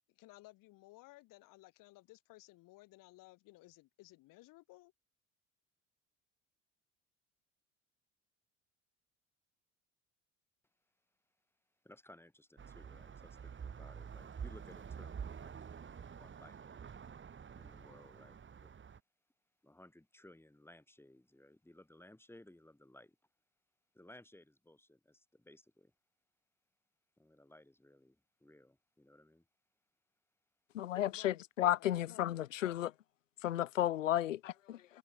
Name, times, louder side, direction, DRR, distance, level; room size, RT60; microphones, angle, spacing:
voice 1, 0.1-4.9 31.1-31.5 31.7-32.4, left 20 dB, 60° left, 7.9 m, -58 dB
voice 2, 11.8-16.6 17.6-18.8 19.6-23.2 23.9-25.9 27.2-29.5, left 1 dB, 5° left, 7.7 m, -60 dB
sound 1, 12.6-19.0, right 7 dB, 30° right, 3.1 m, -48 dB
voice 3, 30.7-32.9 33.4-34.8, left 12 dB, 80° left, 0.6 m, -33 dB
figure-of-eight pair, 60°, 37 cm